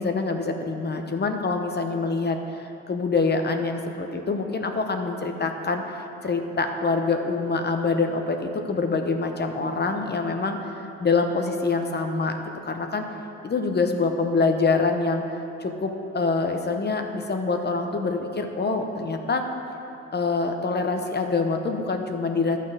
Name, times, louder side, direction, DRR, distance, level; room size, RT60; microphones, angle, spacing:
voice 1, 0.0-5.8 6.2-13.0 13.4-15.2 15.6-19.4 20.1-22.6, left 4 dB, 35° left, 5 dB, 0.8 m, -25 dB
11.5 x 6.7 x 4.9 m, 2.9 s
cardioid pair, 90°, 30 cm